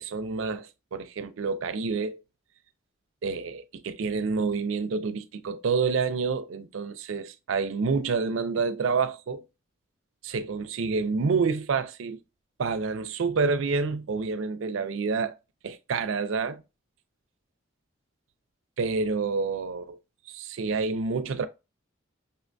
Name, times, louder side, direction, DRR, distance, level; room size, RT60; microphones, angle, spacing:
voice 1, 0.1-2.2 3.2-9.4 10.3-12.2 12.6-15.3 15.6-16.6 18.8-20.0 20.3-21.5, right 4 dB, 80° right, 0.4 m, -28 dB
5.4 x 2.2 x 2.5 m
head